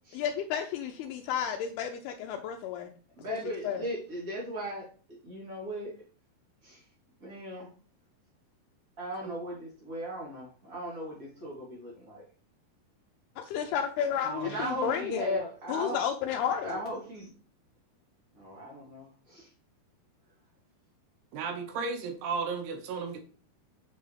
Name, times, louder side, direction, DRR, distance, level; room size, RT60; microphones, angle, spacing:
voice 1, 0.1-3.0 3.3-3.4 3.6-3.8 13.4-15.4 15.7-16.8, left 8 dB, 80° left, 4 dB, 2.5 m, -32 dB
voice 2, 3.2-4.9 5.2-5.9 6.6-6.8 7.2-7.7 9.0-12.2 14.4-16.0 16.6-17.3 18.4-19.5, equal, 25° right, -4 dB, 2.9 m, -37 dB
voice 3, 14.2-14.6 21.3-23.2, right 5 dB, 80° right, 4 dB, 3.2 m, -34 dB
6.8 x 6.6 x 3.3 m, 0.40 s
omnidirectional pair, 4.6 m